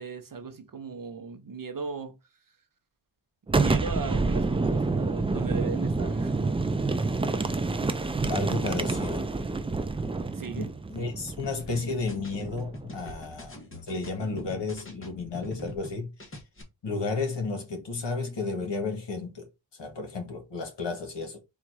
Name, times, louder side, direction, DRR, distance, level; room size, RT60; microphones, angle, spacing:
voice 1, 0.0-2.1 3.6-6.4 10.3-10.7, right 5 dB, 45° right, 0.7 m, -37 dB
Boom, 3.5-13.1, right 3 dB, 15° right, 0.3 m, -28 dB
voice 2, 8.3-9.3 10.6-13.6 13.9-16.1 16.8-19.5 19.8-21.4, left 3 dB, 65° left, 1.5 m, -32 dB
sound 1, 11.4-15.9 16.2-16.6, left 1 dB, 25° left, 1.1 m, -43 dB
4.0 x 2.5 x 4.6 m
wide cardioid pair, 100°, 47 cm